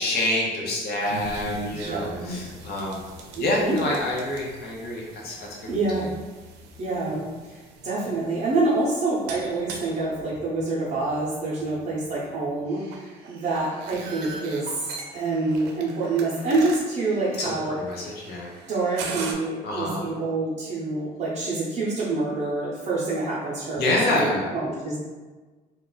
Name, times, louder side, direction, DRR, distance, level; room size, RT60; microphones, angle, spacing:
voice 1, 0.0-3.0 3.4-5.7 5.9-6.1 17.4-18.5 19.6-20.1 23.8-24.5, left 1 dB, 70° left, -3 dB, 0.9 m, -27 dB
sound 1, 1.0-19.3, right 3 dB, 85° right, 0.5 m, -40 dB
voice 2, 1.7-2.3 3.4-3.8 5.7-6.1 6.8-17.8 18.7-25.0, right 2 dB, 45° right, -8 dB, 0.7 m, -27 dB
2.4 x 2.2 x 3.9 m, 1.3 s
cardioid pair, 110°, 17 cm